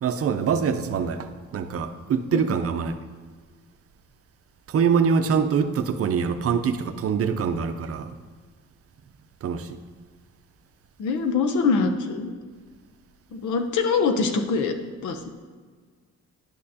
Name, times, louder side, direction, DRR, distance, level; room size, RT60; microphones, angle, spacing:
voice 1, 0.0-1.3 1.5-3.0 4.7-8.1 9.4-9.8, right 6 dB, 50° right, 9 dB, 0.6 m, -24 dB
voice 2, 11.0-12.3 13.3-14.7 15.0-15.2, left 4 dB, 75° left, 6 dB, 0.8 m, -23 dB
10.5 x 6.4 x 2.8 m, 1.6 s
cardioid pair, 90°, 30 cm